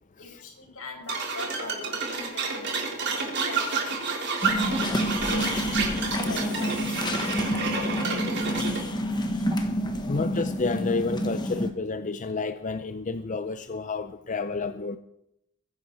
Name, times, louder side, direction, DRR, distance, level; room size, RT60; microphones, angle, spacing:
voice 1, 0.2-4.5 4.8-10.2, left 2 dB, 75° left, 1 dB, 5.2 m, -43 dB
sound 1, 1.1-8.8, right 4 dB, 50° right, 3.4 m, -30 dB
sound 2, 4.4-11.7, equal, 20° left, 1.4 m, -28 dB
voice 2, 10.1-15.0, left 4 dB, 35° left, 10 dB, 0.5 m, -30 dB
22.5 x 10.5 x 4.4 m, 0.80 s
head